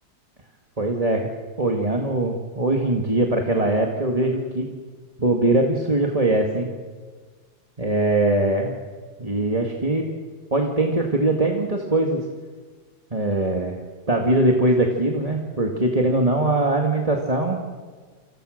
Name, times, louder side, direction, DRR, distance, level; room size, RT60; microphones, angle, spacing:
voice 1, 0.8-1.3 1.6-4.7 5.2-6.7 7.8-8.8 9.2-10.1 10.5-12.3 13.1-13.8 14.1-17.6, right 2 dB, 20° right, 1 dB, 2.0 m, -21 dB
28.0 x 27.0 x 6.6 m, 1.5 s
omnidirectional pair, 2.0 m